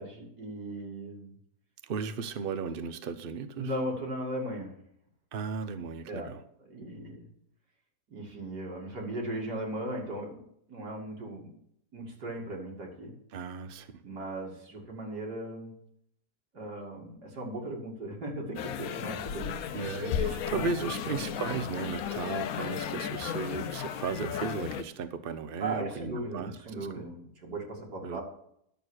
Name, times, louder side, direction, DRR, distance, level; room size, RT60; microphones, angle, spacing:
voice 1, 0.0-1.3 3.6-4.7 6.1-6.3 6.7-7.3 8.1-11.6 11.9-13.1 14.0-15.7 16.5-19.5 20.3-21.2 25.6-28.2, right 1 dB, 80° right, -1 dB, 3.0 m, -37 dB
voice 2, 1.8-3.7 5.3-6.4 13.3-14.0 19.7-27.1 28.0-28.2, right 5 dB, 45° right, 11 dB, 0.8 m, -36 dB
sound 1, 18.6-24.8, left 8 dB, 65° left, 1.1 m, -34 dB
11.5 x 6.9 x 6.4 m, 0.73 s
omnidirectional pair, 1.7 m